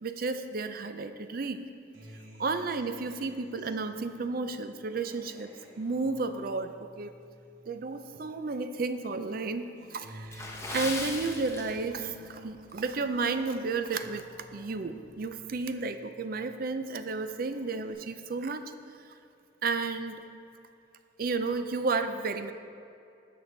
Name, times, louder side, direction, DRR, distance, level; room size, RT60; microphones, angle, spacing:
voice 1, 0.0-1.6 2.4-5.5 5.8-7.2 7.7-14.3 14.5-18.6 19.6-20.2 21.2-22.5, right 3 dB, 50° right, 9 dB, 0.5 m, -32 dB
Acoustic guitar, 1.9-8.6 9.0-16.6 17.0-17.9, equal, 80° right, 1.9 m, -52 dB
Water / Splash splatter, 10.3-12.2 12.5-12.7 13.3-13.5 14.0-14.1, left 2 dB, 15° left, 0.8 m, -37 dB
10.5 x 6.9 x 3.9 m, 2.6 s
head